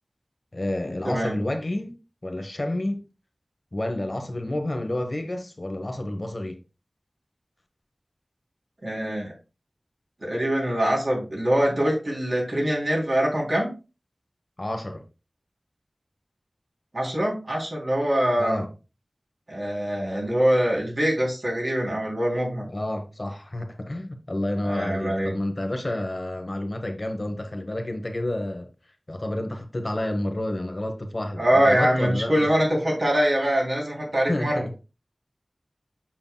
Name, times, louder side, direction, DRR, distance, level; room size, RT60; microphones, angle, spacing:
voice 1, 0.5-2.0 2.2-3.0 3.7-6.6 14.6-15.0 18.4-18.7 22.7-28.7 29.1-32.5 34.3-34.8, left 1 dB, 45° left, 1.0 m, -30 dB
voice 2, 1.0-1.4 8.8-9.3 10.2-13.7 16.9-18.6 19.5-22.7 24.6-25.3 31.4-34.6, equal, 55° right, 3.2 m, -23 dB
7.4 x 5.7 x 2.2 m
wide cardioid pair, 60°, 0 cm